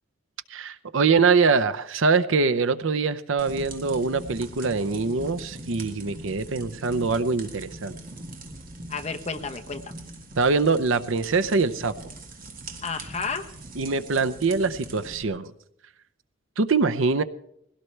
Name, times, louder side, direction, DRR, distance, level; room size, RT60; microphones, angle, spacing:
voice 1, 0.5-7.9 10.4-11.9 13.8-15.5 16.6-17.2, right 4 dB, 70° right, 12 dB, 0.7 m, -23 dB
sound 1, 3.4-15.2, right 2 dB, 45° right, 1.8 m, -41 dB
voice 2, 8.9-9.9 12.8-13.8, left 4 dB, 30° left, 5 dB, 1.0 m, -32 dB
20.5 x 17.0 x 3.3 m, 0.76 s
head